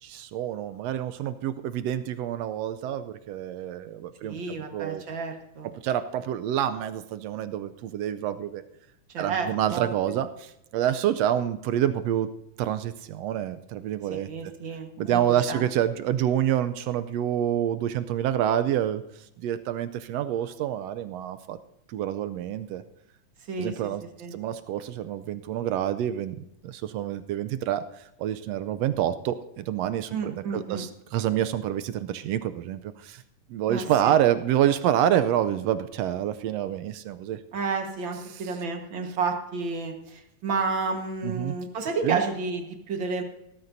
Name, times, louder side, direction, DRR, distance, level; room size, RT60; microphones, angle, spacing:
voice 1, 0.0-5.0 5.8-8.6 9.2-12.3 12.6-14.5 15.0-19.0 19.4-21.6 21.9-22.8 23.6-24.0 24.3-33.2 33.5-37.4 38.3-38.4 41.2-41.6 42.0-42.2, right 11 dB, 80° right, 12 dB, 1.5 m, -27 dB
voice 2, 4.2-5.7 9.1-10.2 14.1-15.2 15.5-15.6 23.5-23.9 24.2-24.3 30.1-30.8 33.7-34.1 37.5-43.2, right 4 dB, 50° right, 4 dB, 1.8 m, -31 dB
17.5 x 14.0 x 2.7 m, 0.85 s
omnidirectional pair, 3.4 m